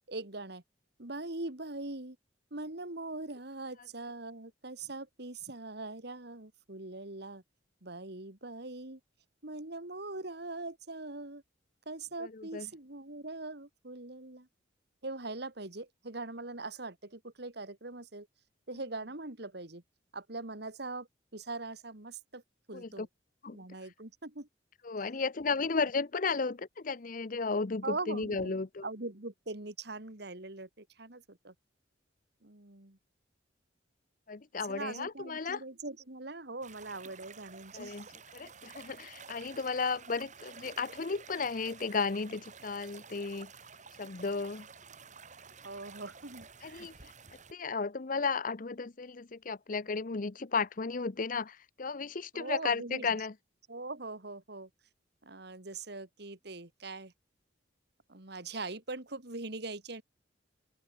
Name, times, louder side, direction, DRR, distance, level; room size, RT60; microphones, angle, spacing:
voice 1, 0.1-0.6 1.0-2.2 2.5-7.4 7.8-9.0 9.4-11.4 11.9-14.5 15.0-18.3 18.7-19.8 20.1-22.4 22.7-23.1 23.5-24.5 27.8-28.6 28.8-31.5 32.4-33.0 34.6-38.1 45.6-46.9 52.3-53.1 53.7-54.7 55.2-57.1 58.1-60.0, right 2 dB, 60° right, 2.5 m, -42 dB
voice 2, 12.2-12.7 22.7-23.1 23.4-23.6 24.8-28.9 34.3-35.6 37.7-38.1 38.3-43.5 44.0-44.7 46.6-46.9 47.5-53.3, left 4 dB, 45° left, 0.7 m, -34 dB
sound 1, 36.6-47.5, right 5 dB, 40° right, 4.4 m, -51 dB
open air
head